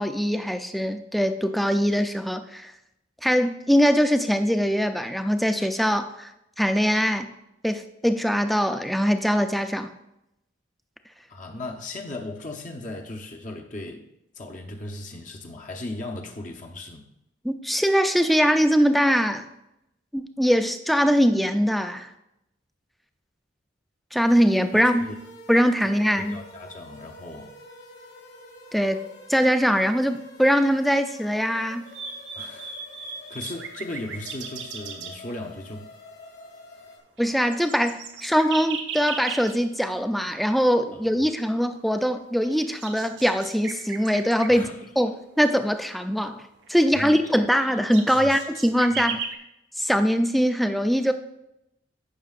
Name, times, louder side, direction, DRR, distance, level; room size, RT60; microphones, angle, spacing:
voice 1, 0.0-2.7 3.2-6.3 6.6-7.3 7.6-9.9 17.4-19.5 20.1-22.1 24.1-25.1 25.5-26.4 28.7-31.9 37.2-44.7 45.0-46.4 46.7-49.2 49.8-51.1, equal, ahead, 0.4 m, -22 dB
voice 2, 11.3-14.1 14.3-17.0 24.7-25.1 25.8-25.9 26.3-27.5 32.3-32.7 33.3-35.9 40.9-41.1 44.5-44.8 47.0-47.2 48.1-48.3 48.9-49.1, left 2 dB, 40° left, 0.8 m, -37 dB
sound 1, 24.2-37.0, left 2 dB, 60° left, 2.1 m, -48 dB
sound 2, 31.9-35.2 37.2-37.3 37.5-39.6 41.8-41.9 42.4-44.5 46.7-46.8 47.3-49.4, right 6 dB, 65° right, 1.1 m, -36 dB
15.0 x 6.1 x 2.4 m
head